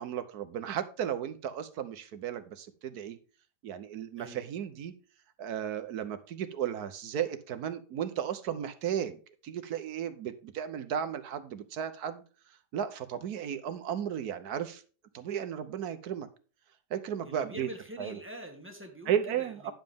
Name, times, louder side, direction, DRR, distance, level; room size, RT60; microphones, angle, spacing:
voice 1, 0.0-3.2 3.6-4.9 5.4-12.2 12.7-14.8 15.1-16.3 16.9-17.7 18.0-18.2 19.1-19.7, right 9 dB, 70° right, 11 dB, 1.3 m, -34 dB
voice 2, 4.2-4.5 17.2-19.7, right 1 dB, 5° right, 2 dB, 1.7 m, -45 dB
10.5 x 7.3 x 3.5 m, 0.37 s
omnidirectional pair, 1.8 m